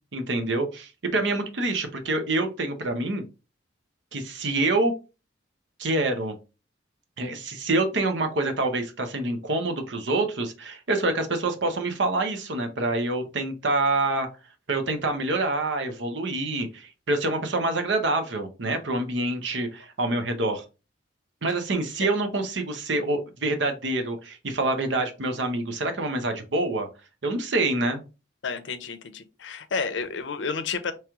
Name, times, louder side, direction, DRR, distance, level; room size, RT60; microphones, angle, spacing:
voice 1, 0.1-3.2 4.1-4.9 5.8-6.4 7.2-14.3 14.7-20.6 21.4-26.9 27.2-28.0, right 2 dB, 80° right, 0.8 m, -26 dB
voice 2, 28.4-30.9, left 5 dB, 80° left, 0.6 m, -31 dB
3.1 x 3.0 x 3.5 m
head